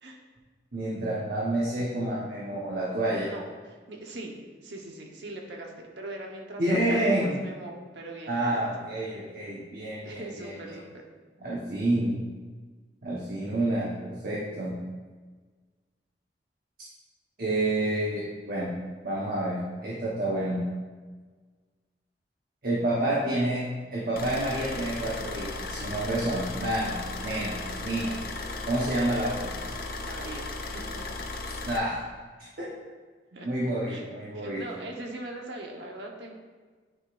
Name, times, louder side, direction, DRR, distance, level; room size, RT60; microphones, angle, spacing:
voice 1, 0.7-3.3 6.6-7.4 8.3-10.8 11.4-12.2 13.0-14.8 17.4-18.7 19.0-20.6 22.6-23.6 23.9-28.1 28.7-29.6 31.6-31.9 32.6-32.7 33.4-34.7, right 1 dB, 55° right, -6 dB, 1.2 m, -29 dB
voice 2, 3.3-4.3 4.6-7.0 7.2-8.7 10.0-11.0 30.0-31.0 32.4-32.5 33.3-33.5 33.9-34.1 34.3-36.4, right 2 dB, 80° right, 0 dB, 1.1 m, -41 dB
sound 1, 24.2-31.8, left 2 dB, 55° left, 0.6 m, -36 dB
9.8 x 5.3 x 2.6 m, 1.4 s
head